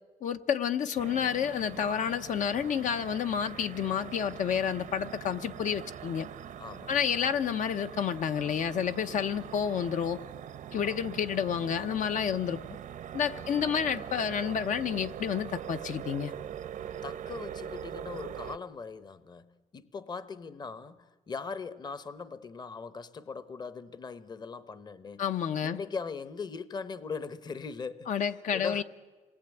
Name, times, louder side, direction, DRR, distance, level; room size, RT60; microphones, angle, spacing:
voice 1, 0.2-6.3 6.9-10.2 10.7-12.6 13.1-16.3 25.2-25.8 28.1-28.8, left 8 dB, 75° left, 0.9 m, -30 dB
sound 1, 1.0-18.6, right 9 dB, 85° right, 0.9 m, -43 dB
voice 2, 6.6-7.4 10.8-11.1 12.3-12.5 13.4-13.5 17.0-25.2 25.6-28.8, left 5 dB, 35° left, 0.8 m, -40 dB
27.0 x 20.0 x 9.1 m
wide cardioid pair, 155°, 13 cm